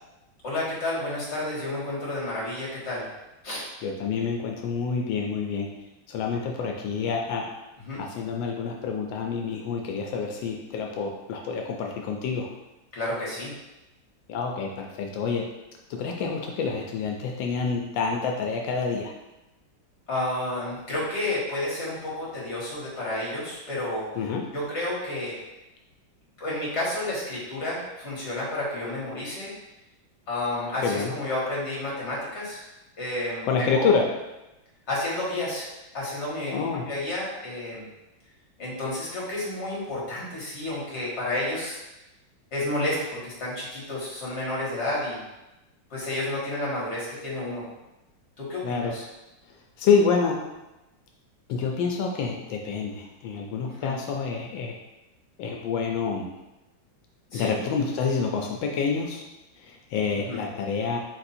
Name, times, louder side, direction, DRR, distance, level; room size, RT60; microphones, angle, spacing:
voice 1, 0.4-3.1 3.4-3.6 7.9-8.0 12.9-13.5 20.1-24.1 24.5-25.4 26.4-29.5 30.3-32.6 33.0-33.9 34.9-35.7 35.9-37.8 38.6-41.8 42.5-45.2 45.9-47.6 48.4-49.0 53.8-53.9 57.3-57.5 60.2-60.4, left 1 dB, 40° left, -6 dB, 1.6 m, -30 dB
voice 2, 3.8-5.7 6.1-7.4 8.0-12.5 14.3-15.4 15.9-19.1 24.1-24.4 30.8-31.1 33.4-34.0 36.5-36.8 48.6-48.9 49.8-50.4 51.5-54.8 55.4-56.3 57.3-59.2 59.6-61.0, left 5 dB, 85° left, 1 dB, 1.3 m, -27 dB
4.1 x 2.6 x 4.1 m, 0.98 s
omnidirectional pair, 2.0 m